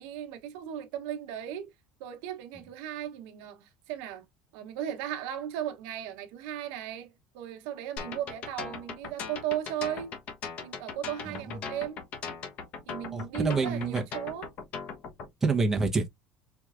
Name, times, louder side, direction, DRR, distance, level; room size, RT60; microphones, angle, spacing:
voice 1, 0.0-1.7 2.0-4.3 4.5-10.1 10.6-12.0 12.9-14.5, right 11 dB, 85° right, 0.9 m, -36 dB
sound 1, 8.0-15.3, left 5 dB, 55° left, 1.0 m, -39 dB
voice 2, 13.1-14.0 15.4-16.1, right 3 dB, 15° right, 1.0 m, -27 dB
4.5 x 3.1 x 2.4 m
cardioid pair, 135°, 3 cm